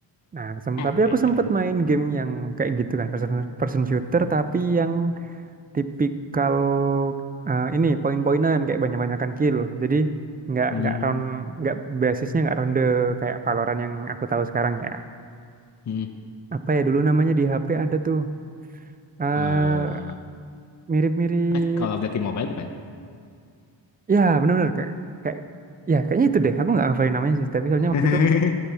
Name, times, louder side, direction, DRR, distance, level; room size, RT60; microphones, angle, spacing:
voice 1, 0.3-5.1 5.7-7.2 7.5-10.1 10.5-15.0 16.5-18.3 19.2-20.0 20.9-21.9 24.1-24.9 25.2-25.4 25.9-28.2, right 4 dB, 20° right, 10 dB, 0.4 m, -23 dB
voice 2, 10.7-11.2 15.9-16.1 19.3-20.2 21.5-22.7 27.9-28.6, left 6 dB, 40° left, 5 dB, 0.6 m, -25 dB
12.0 x 8.6 x 3.4 m, 2.3 s
cardioid pair, 75°, 46 cm